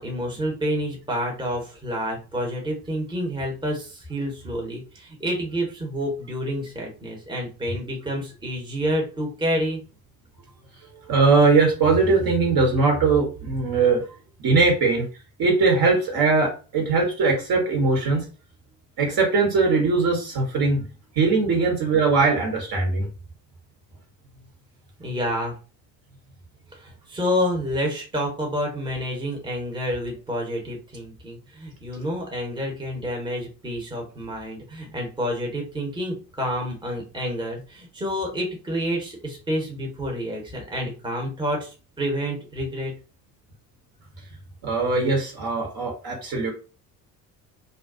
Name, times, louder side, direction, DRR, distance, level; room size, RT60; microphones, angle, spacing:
voice 1, 0.0-9.8 25.0-25.5 26.7-42.9, equal, 10° right, 0 dB, 0.9 m, -29 dB
voice 2, 11.1-14.0 14.4-15.0 15.4-18.2 19.0-20.8 21.2-23.1 44.6-46.5, right 4 dB, 50° right, 1 dB, 1.2 m, -20 dB
2.4 x 2.2 x 2.4 m, 0.34 s
hypercardioid pair, 65°, 48 cm